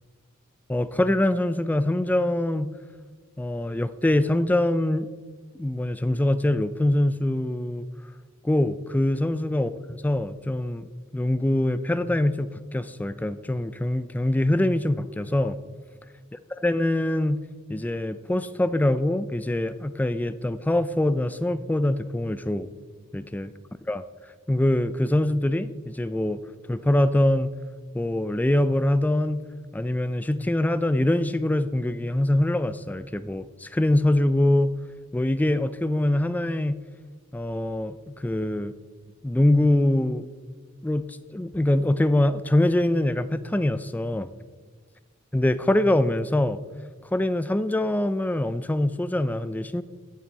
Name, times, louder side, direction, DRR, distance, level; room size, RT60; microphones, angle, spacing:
voice 1, 0.7-2.7 3.4-5.1 5.6-7.9 8.4-15.6 16.5-17.4 17.7-22.7 23.1-23.5 23.9-24.0 24.5-26.4 26.7-27.5 27.9-29.4 29.7-34.7 35.1-36.8 37.3-38.7 39.2-40.3 40.8-44.3 45.3-46.6 47.1-49.8, left 1 dB, 10° left, 13 dB, 0.3 m, -24 dB
17.0 x 6.1 x 4.1 m, 1.5 s
head